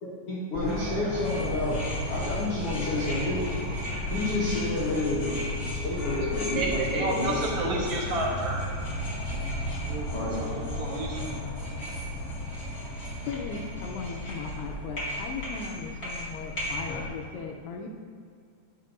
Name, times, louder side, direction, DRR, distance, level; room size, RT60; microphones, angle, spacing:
voice 1, 0.3-1.8 2.1-3.5 4.1-7.8 10.1-10.3, left 2 dB, 65° left, -7 dB, 1.4 m, -30 dB
sound 1, 0.5-17.1, left 1 dB, 40° left, 1.3 m, -33 dB
voice 2, 6.5-8.7 9.9-11.3, right 2 dB, 80° right, -3 dB, 1.7 m, -31 dB
voice 3, 13.3-17.9, left 5 dB, 85° left, 1 dB, 2.6 m, -37 dB
16.5 x 5.9 x 2.6 m, 2.1 s
omnidirectional pair, 4.7 m